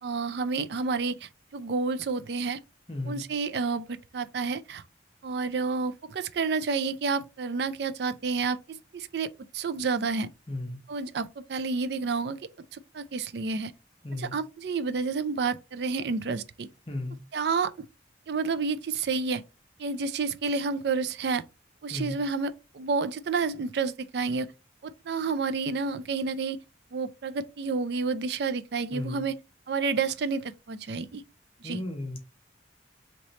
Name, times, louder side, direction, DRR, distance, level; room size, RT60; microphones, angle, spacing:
voice 1, 0.0-2.6 3.1-4.8 5.2-10.3 10.9-12.4 12.7-13.7 14.2-16.7 17.3-17.9 18.3-19.4 19.8-21.4 21.8-24.5 24.8-26.6 26.9-29.3 29.7-31.2 31.6-31.8, right 4 dB, 60° right, 0.4 m, -30 dB
voice 2, 2.9-3.2 10.5-10.8 14.0-14.4 16.9-17.2 21.9-22.2 28.9-29.2 31.6-32.2, left 2 dB, 30° left, 0.7 m, -34 dB
3.1 x 2.9 x 4.0 m
head